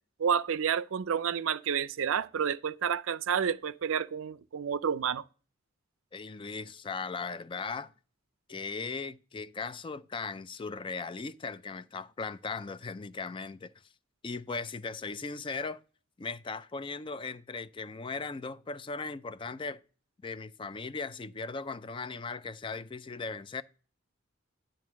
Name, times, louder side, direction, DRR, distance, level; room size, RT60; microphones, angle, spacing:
voice 1, 0.2-5.2, right 7 dB, 75° right, 0.4 m, -30 dB
voice 2, 6.1-7.9 8.5-13.7 14.2-15.8 16.2-19.8 20.2-23.6, left 4 dB, 25° left, 0.4 m, -38 dB
10.5 x 3.7 x 6.2 m
head